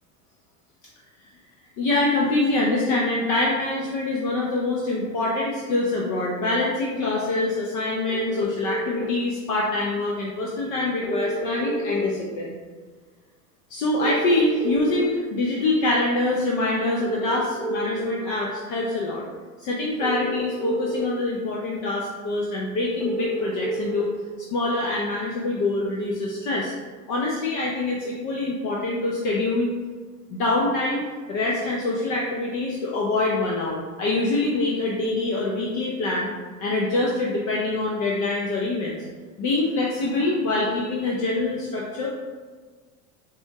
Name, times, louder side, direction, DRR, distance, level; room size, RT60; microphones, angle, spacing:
voice 1, 1.8-12.5 13.7-19.3 19.6-24.1 24.5-26.7 27.1-29.7 30.3-31.0 31.3-36.3 36.6-39.0 39.4-42.1, left 2 dB, 45° left, -3 dB, 0.6 m, -25 dB
sound 1, 8.1-9.0 11.0-12.0 14.0-15.0 17.0-18.0 20.0-21.0 23.0-24.0, right 1 dB, 5° left, 0.6 m, -29 dB
4.1 x 2.4 x 2.7 m, 1.5 s
hypercardioid pair, 100°, 44 cm